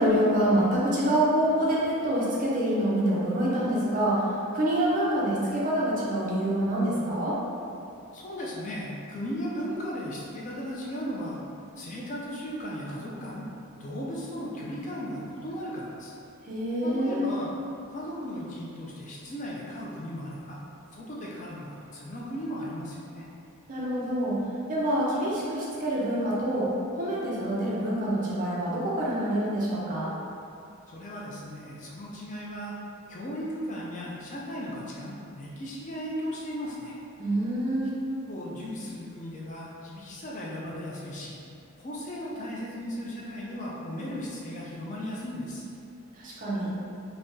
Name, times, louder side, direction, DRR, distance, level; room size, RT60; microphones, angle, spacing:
voice 1, 0.0-4.2 4.5-7.4 16.5-17.3 23.7-24.4 24.7-26.7 27.0-30.1 37.2-37.9 46.2-46.7, right 1 dB, 35° right, -6 dB, 0.5 m, -26 dB
voice 2, 8.1-11.4 11.8-13.4 13.8-16.1 16.8-17.5 17.9-20.6 20.9-23.3 30.9-32.7 33.1-37.0 38.3-41.4 41.8-45.7, equal, 35° left, -5 dB, 0.3 m, -36 dB
3.5 x 2.1 x 2.6 m, 2.6 s
head